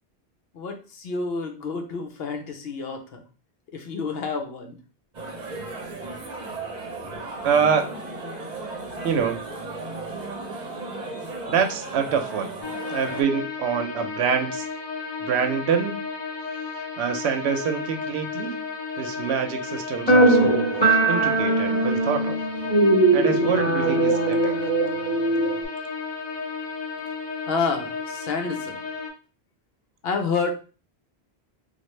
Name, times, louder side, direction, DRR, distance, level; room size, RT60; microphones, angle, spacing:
voice 1, 0.5-3.2 3.7-4.8 27.5-28.8 30.0-30.5, left 4 dB, 70° left, 0.9 m, -29 dB
sound 1, 5.1-13.2, right 2 dB, 45° right, 0.8 m, -35 dB
voice 2, 7.4-7.9 9.0-9.4 11.5-12.5 12.9-14.7 15.2-16.0 17.0-18.7 19.0-20.7 21.1-22.4 23.1-24.5, right 6 dB, 85° right, 0.9 m, -25 dB
sound 2, 12.6-29.1, left 5 dB, 30° left, 0.7 m, -33 dB
sound 3, 20.1-25.6, right 2 dB, 10° left, 1.5 m, -20 dB
3.3 x 2.3 x 3.1 m
omnidirectional pair, 1.1 m